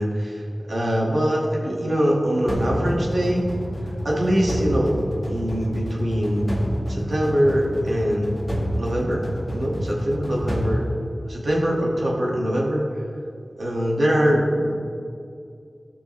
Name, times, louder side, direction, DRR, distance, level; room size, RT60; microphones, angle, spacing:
voice 1, 0.0-3.5 4.0-5.0 5.3-6.5 6.9-8.3 8.8-10.8 11.3-12.9 13.6-14.7, equal, 75° right, -3 dB, 2.0 m, -23 dB
sound 1, 2.5-11.7, equal, 10° left, 2.0 m, -29 dB
14.5 x 6.2 x 3.4 m, 2.4 s
wide cardioid pair, 70°, 0 cm